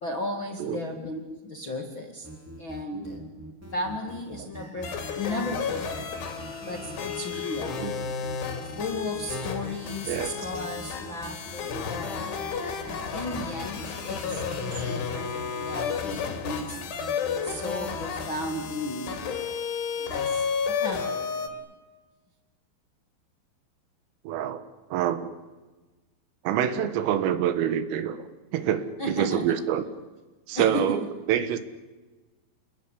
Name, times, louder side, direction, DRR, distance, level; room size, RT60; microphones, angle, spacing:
voice 1, 0.0-2.3 2.6-3.2 3.7-6.1 6.7-7.9 8.6-12.3 12.8-16.8 17.3-19.6 19.9-21.5 29.0-29.5 30.5-31.0, left 1 dB, 45° left, 3 dB, 1.6 m, -35 dB
sound 1, 2.2-18.9, right 1 dB, 5° right, 2.0 m, -44 dB
sound 2, 4.8-21.5, left 6 dB, 70° left, 5.0 m, -32 dB
voice 2, 24.3-24.6 24.9-25.3 26.5-28.2 28.5-29.8 30.5-31.6, right 10 dB, 85° right, 11 dB, 4.2 m, -26 dB
28.5 x 20.5 x 9.9 m, 1.2 s
omnidirectional pair, 5.7 m